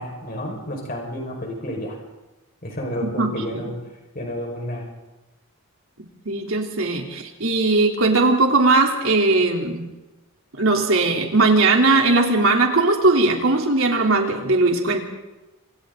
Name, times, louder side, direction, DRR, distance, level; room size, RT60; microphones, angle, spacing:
voice 1, 0.0-2.0 2.6-3.7 4.1-4.9, equal, 40° left, 1 dB, 5.3 m, -30 dB
voice 2, 3.0-3.6 6.3-9.8 10.6-15.0, right 3 dB, 70° right, 1 dB, 3.5 m, -19 dB
29.5 x 26.0 x 4.0 m, 1.1 s
head